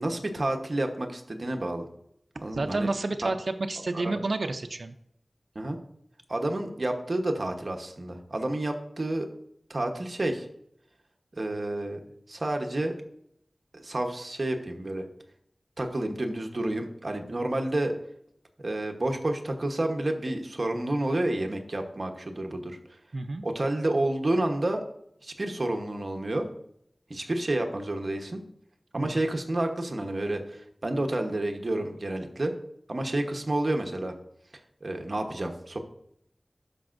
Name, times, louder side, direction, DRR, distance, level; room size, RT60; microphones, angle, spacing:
voice 1, 0.0-1.9 2.4-2.9 3.2-3.3 3.9-4.2 5.5-5.8 6.3-9.3 9.7-10.5 11.3-12.0 12.3-12.9 13.7-15.1 15.8-17.9 18.6-23.0 23.4-24.8 25.2-26.5 27.1-28.4 28.9-32.5 32.9-34.1 34.8-35.8, right 1 dB, 55° right, 5 dB, 1.0 m, -30 dB
voice 2, 2.5-4.9 23.1-23.4 29.0-29.2, right 2 dB, 80° right, 8 dB, 0.4 m, -30 dB
12.0 x 5.3 x 2.5 m, 0.73 s
wide cardioid pair, 60°, 0 cm